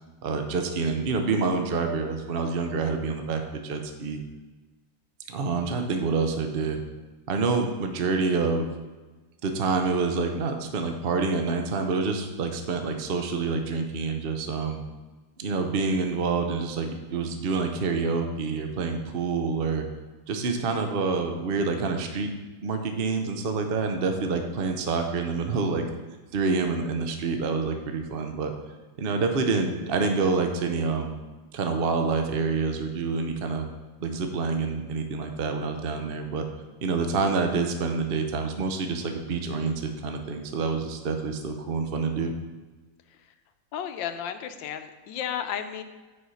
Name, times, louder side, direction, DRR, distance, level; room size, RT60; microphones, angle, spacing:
voice 1, 0.2-4.2 5.3-6.8 7.3-8.7 9.4-14.8 15.4-19.8 20.3-22.3 22.6-25.8 26.3-28.5 29.0-31.1 31.5-33.7 34.0-36.4 36.8-42.3, right 4 dB, 75° right, 5 dB, 0.5 m, -27 dB
voice 2, 43.7-45.8, left 9 dB, 80° left, 8 dB, 1.4 m, -33 dB
6.4 x 5.8 x 7.0 m, 1.3 s
omnidirectional pair, 2.1 m